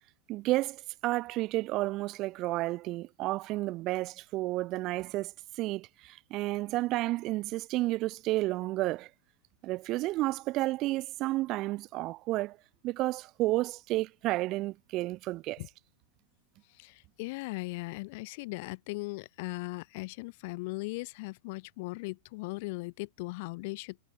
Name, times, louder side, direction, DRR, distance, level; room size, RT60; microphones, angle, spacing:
voice 1, 0.3-9.1 9.6-12.6 12.8-15.6, right 18 dB, 40° right, 0.9 m, -31 dB
voice 2, 16.7-24.0, left 25 dB, 50° left, 2.8 m, -38 dB
figure-of-eight pair, 90°, 0 cm